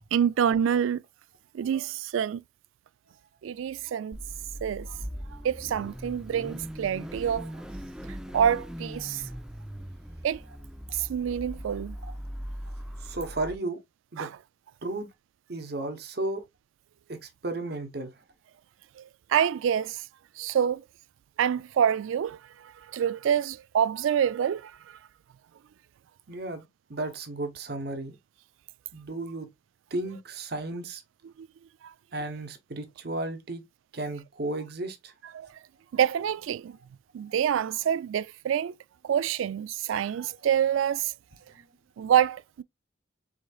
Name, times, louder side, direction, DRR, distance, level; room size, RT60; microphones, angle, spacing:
voice 1, 0.1-1.0 1.5-2.4 3.4-4.2 4.6-5.0 5.3-7.5 8.3-9.2 10.2-10.4 10.9-12.0 14.2-14.3 19.0-20.0 20.4-20.8 21.4-24.7 31.4-31.5 31.8-31.9 35.3-35.5 35.9-36.8 37.1-38.7 39.0-41.1 42.0-42.6, right 9 dB, 85° right, 0.3 m, -27 dB
Car / Idling / Accelerating revving vroom, 4.1-13.6, equal, 5° right, 0.3 m, -40 dB
voice 2, 13.0-13.8 14.1-14.3 14.8-15.1 15.5-16.4 17.1-18.1 26.3-28.2 28.9-29.5 29.9-31.0 32.1-33.6 33.9-35.1, right 2 dB, 55° right, 0.9 m, -34 dB
5.0 x 3.8 x 2.3 m
head